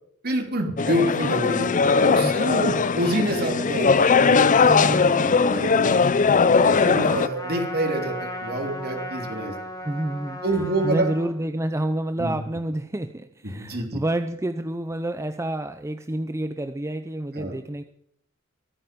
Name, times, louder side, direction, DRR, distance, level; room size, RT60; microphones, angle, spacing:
voice 1, 0.2-1.7 2.0-5.0 5.4-6.0 6.3-9.5 10.4-11.1 12.2-12.4 13.6-14.0 17.4-17.5, right 1 dB, 45° right, 3 dB, 3.1 m, -27 dB
sound 1, 0.8-7.3, left 5 dB, 35° left, 0.6 m, -19 dB
voice 2, 2.2-2.8 4.7-5.5 9.8-10.4 10.8-17.8, right 1 dB, 15° right, 9 dB, 0.6 m, -29 dB
Trumpet, 6.7-11.4, equal, 15° left, 2.5 m, -36 dB
23.5 x 8.9 x 5.2 m, 0.70 s
head